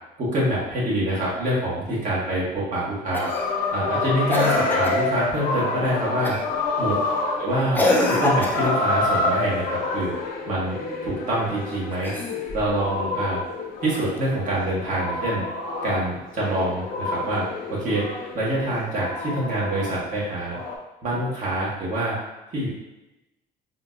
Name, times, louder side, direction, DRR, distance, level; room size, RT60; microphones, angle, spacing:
voice 1, 0.2-3.3 3.7-6.4 6.8-7.0 7.4-10.1 10.5-12.1 12.5-13.4 13.8-15.4 15.8-17.4 17.7-18.1 18.3-20.6 21.0-22.1 22.5-22.7, right 1 dB, 50° right, -6 dB, 1.4 m, -25 dB
Cough, 3.1-3.5 4.3-5.1 6.2-6.6 7.7-8.8 11.9-12.7 14.2-14.3, left 1 dB, 10° left, 0.5 m, -25 dB
sound 1, 3.2-20.2 20.5-20.8, left 2 dB, 60° left, 0.7 m, -28 dB
3.7 x 2.6 x 2.4 m, 0.99 s
cardioid pair, 110°, 17 cm